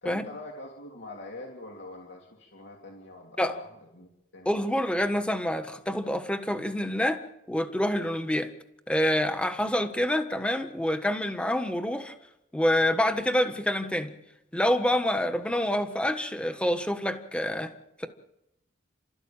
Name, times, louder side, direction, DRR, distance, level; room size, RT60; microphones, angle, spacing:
voice 1, 0.0-4.5, left 2 dB, 65° left, 0 dB, 3.2 m, -44 dB
voice 2, 4.4-7.2 7.5-8.5 8.9-12.1 12.5-14.1 14.5-17.7, left 1 dB, 5° left, 8 dB, 1.4 m, -27 dB
29.5 x 13.5 x 9.0 m, 0.86 s
head